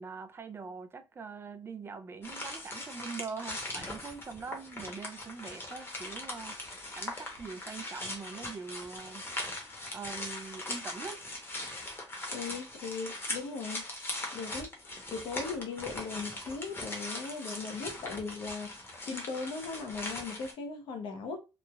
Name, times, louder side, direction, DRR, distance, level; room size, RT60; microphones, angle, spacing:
voice 1, 0.0-9.2 9.9-11.2, right 5 dB, 30° right, 0.3 m, -43 dB
sound 1, 2.2-20.5, left 2 dB, 25° left, 0.8 m, -40 dB
voice 2, 12.3-13.9 14.3-14.7 15.1-18.7 19.1-21.4, left 4 dB, 80° left, 0.7 m, -38 dB
3.1 x 2.1 x 2.3 m
cardioid pair, 125°, 8 cm